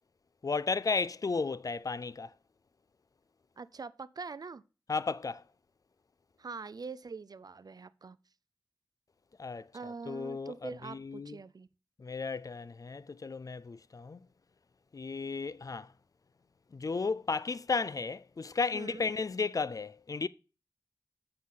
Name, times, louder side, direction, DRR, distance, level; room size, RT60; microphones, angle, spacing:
voice 1, 0.4-2.3 4.9-5.4 9.4-9.6 10.1-11.4 12.0-14.2 14.9-15.9 16.7-20.3, left 4 dB, 50° left, 0.4 m, -34 dB
voice 2, 3.6-4.6 6.4-8.2 9.7-11.7 18.7-19.1, right 4 dB, 60° right, 0.4 m, -44 dB
7.6 x 5.8 x 3.7 m
wide cardioid pair, 60°, 7 cm